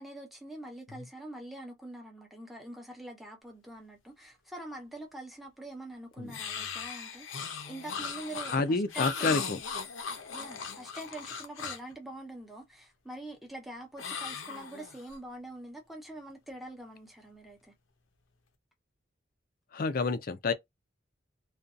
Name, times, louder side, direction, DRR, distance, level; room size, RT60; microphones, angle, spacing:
voice 1, 0.0-7.4 7.7-9.5 10.3-17.7, right 1 dB, ahead, 0.8 m, -45 dB
sound 1, 6.3-11.9 14.0-15.2, left 6 dB, 85° left, 0.6 m, -38 dB
voice 2, 8.5-9.6 19.7-20.5, left 4 dB, 45° left, 0.4 m, -29 dB
2.6 x 2.3 x 2.3 m
head